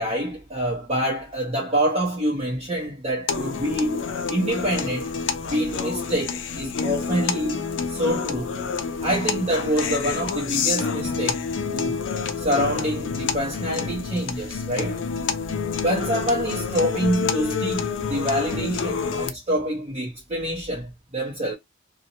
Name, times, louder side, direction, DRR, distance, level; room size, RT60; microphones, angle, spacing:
voice 1, 0.0-5.1 5.4-8.5 9.0-11.5 11.7-12.0 12.4-15.0 15.8-21.5, equal, 35° right, 0.6 m, -26 dB
sound 1, 3.3-19.3, left 5 dB, 65° left, 0.4 m, -28 dB
2.7 x 2.1 x 2.8 m
head